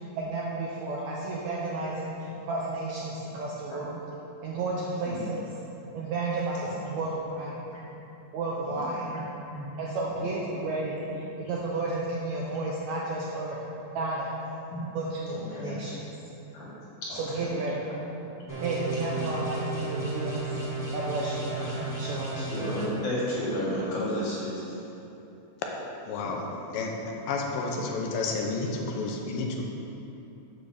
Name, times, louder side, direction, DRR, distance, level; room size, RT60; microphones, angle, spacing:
voice 1, 0.1-4.0 4.4-5.4 5.9-7.6 8.3-9.1 9.8-13.6 13.9-14.3 14.9-15.9 17.1-17.9 18.6-20.4 20.9-21.5 22.0-22.3, right 2 dB, 75° right, -4 dB, 1.7 m, -32 dB
voice 2, 8.6-9.6 10.1-10.4 11.4-11.6 12.5-12.6 14.7-14.9 15.3-15.8 16.5-16.6 17.0-17.5 18.4-18.5 19.0-19.5 21.6-21.8 22.3-24.8 28.9-29.0, equal, 60° left, -8 dB, 3.5 m, -34 dB
sound 1, 18.5-22.9, right 2 dB, 10° right, 0.9 m, -33 dB
voice 3, 26.1-26.5 26.7-26.9 27.3-29.6, left 3 dB, 85° left, 0 dB, 2.5 m, -30 dB
7.5 x 5.1 x 6.5 m, 3.0 s
omnidirectional pair, 4.0 m